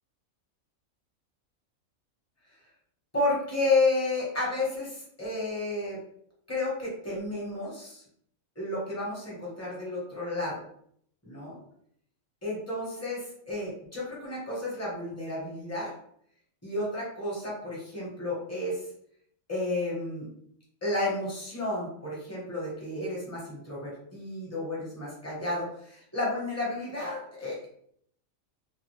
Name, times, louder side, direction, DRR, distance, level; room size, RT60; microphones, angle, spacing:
voice 1, 3.1-6.0 6.5-8.0 8.5-10.6 11.2-11.6 12.4-15.9 16.6-18.8 19.5-20.3 20.8-27.7, left 2 dB, 10° left, -6 dB, 1.1 m, -31 dB
2.7 x 2.5 x 3.2 m, 0.67 s
omnidirectional pair, 1.5 m